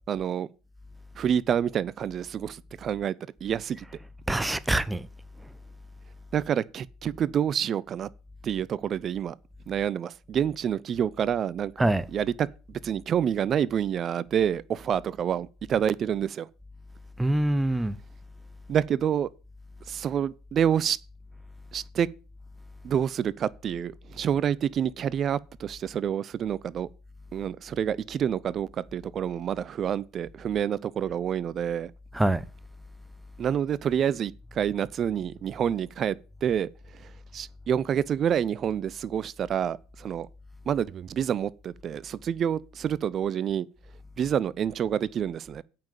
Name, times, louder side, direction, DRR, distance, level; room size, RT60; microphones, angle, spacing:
voice 1, 0.1-0.5 1.2-3.1 3.4-3.8 6.3-8.1 8.4-9.3 9.7-12.5 12.8-16.5 18.7-19.3 19.9-21.0 21.7-22.1 22.8-26.9 27.3-31.9 33.4-40.3 40.7-43.7 44.2-45.6, right 9 dB, 45° right, 0.5 m, -28 dB
voice 2, 4.3-5.1 11.8-12.0 17.2-18.0 32.1-32.4, right 1 dB, 10° right, 0.8 m, -24 dB
8.8 x 5.9 x 7.3 m
hypercardioid pair, 70°, 0 cm